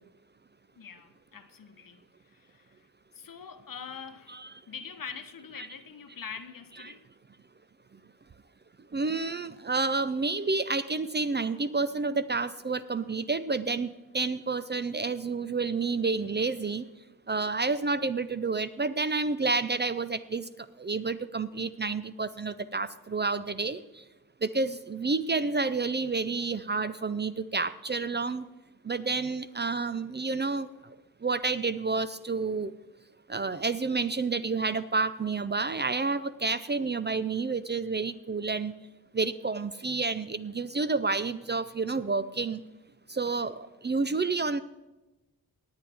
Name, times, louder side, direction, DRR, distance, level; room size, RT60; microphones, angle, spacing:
voice 1, 0.8-2.9 3.1-7.1, left 6 dB, 60° left, 1.0 m, -44 dB
voice 2, 8.9-16.9 17.3-20.5 20.8-23.8 24.4-28.4 28.8-30.7 31.2-32.7 33.3-38.7 39.1-42.6 43.1-44.6, right 4 dB, 30° right, 0.4 m, -29 dB
19.0 x 8.6 x 3.4 m
cardioid pair, 60°, 38 cm